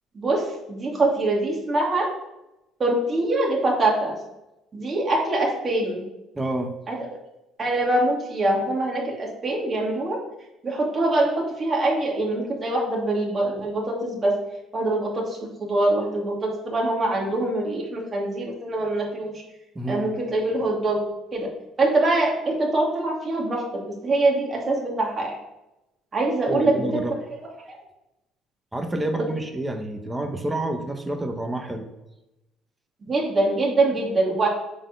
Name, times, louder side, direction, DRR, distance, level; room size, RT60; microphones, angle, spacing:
voice 1, 0.1-2.1 2.8-4.1 4.7-6.0 6.9-7.0 7.6-10.2 10.6-14.3 14.7-19.3 19.9-21.0 21.3-21.5 21.8-25.4 26.1-26.9 27.7-27.8 33.1-34.5, right 2 dB, 30° right, -2 dB, 2.7 m, -24 dB
voice 2, 6.3-6.7 19.7-20.1 26.5-27.1 28.7-31.9, right 1 dB, 10° right, 5 dB, 1.0 m, -28 dB
8.6 x 4.3 x 6.8 m, 0.94 s
cardioid pair, 120°, 0 cm